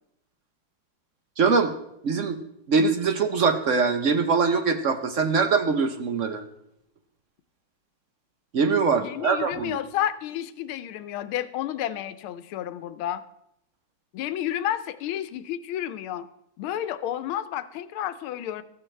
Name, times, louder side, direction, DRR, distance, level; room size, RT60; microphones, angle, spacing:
voice 1, 1.4-1.7 2.0-2.4 2.7-6.4 8.5-9.8, right 5 dB, 60° right, 8 dB, 0.8 m, -23 dB
voice 2, 9.0-13.2 14.1-16.3 16.6-18.6, left 11 dB, 85° left, 13 dB, 1.6 m, -31 dB
15.5 x 14.0 x 3.3 m, 0.80 s
omnidirectional pair, 2.3 m